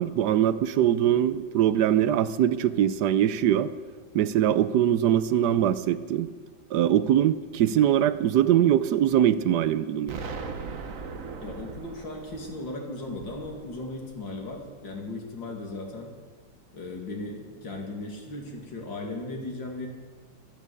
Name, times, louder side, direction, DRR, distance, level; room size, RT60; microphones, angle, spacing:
voice 1, 0.0-3.7 4.1-6.3 6.7-10.2, right 10 dB, 70° right, 13 dB, 1.1 m, -22 dB
Explosion, 10.1-14.9, right 4 dB, 50° right, 1.3 m, -40 dB
voice 2, 11.4-16.1 16.7-19.9, left 2 dB, 70° left, 1 dB, 3.1 m, -37 dB
13.0 x 12.0 x 8.2 m, 1.4 s
omnidirectional pair, 2.1 m